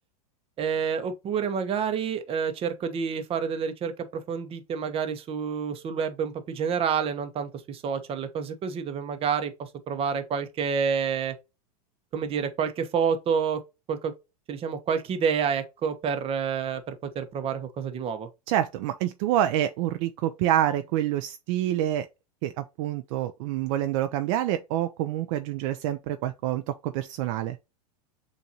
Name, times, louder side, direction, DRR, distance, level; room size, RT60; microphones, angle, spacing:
voice 1, 0.6-11.3 12.1-13.6 13.9-14.1 14.5-18.3, right 6 dB, 30° right, 0.9 m, -28 dB
voice 2, 18.5-22.1 22.4-27.6, right 12 dB, 55° right, 0.5 m, -27 dB
6.9 x 2.6 x 2.8 m
hypercardioid pair, 120°, 20 cm